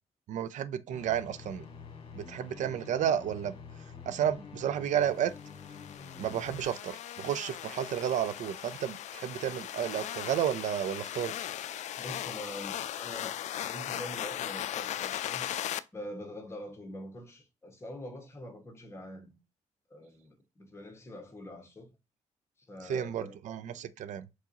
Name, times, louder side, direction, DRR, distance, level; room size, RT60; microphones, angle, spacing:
voice 1, 0.3-1.7 2.1-3.5 4.1-5.3 6.2-11.3 22.8-24.2, right 9 dB, 70° right, 0.5 m, -32 dB
sound 1, 0.9-6.6, left 5 dB, 45° left, 1.6 m, -47 dB
sound 2, 5.4-15.8, left 11 dB, 65° left, 0.4 m, -38 dB
voice 2, 12.0-15.5 15.9-19.4 19.9-21.9 22.7-23.4, left 1 dB, 20° left, 1.5 m, -44 dB
4.6 x 4.0 x 2.8 m
cardioid pair, 120°, 13 cm